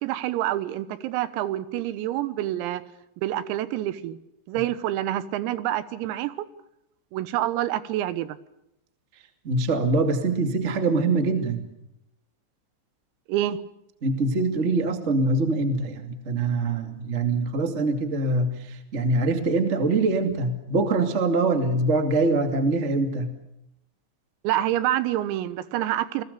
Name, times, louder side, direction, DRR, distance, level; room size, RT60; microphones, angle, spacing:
voice 1, 0.0-2.8 3.2-4.2 4.5-6.5 7.1-8.4 13.3-13.6 24.4-26.2, right 13 dB, 90° right, 14 dB, 3.9 m, -27 dB
voice 2, 9.4-11.6 14.0-23.3, right 3 dB, 60° right, 6 dB, 0.7 m, -24 dB
29.0 x 21.0 x 6.8 m, 0.84 s
omnidirectional pair, 6.0 m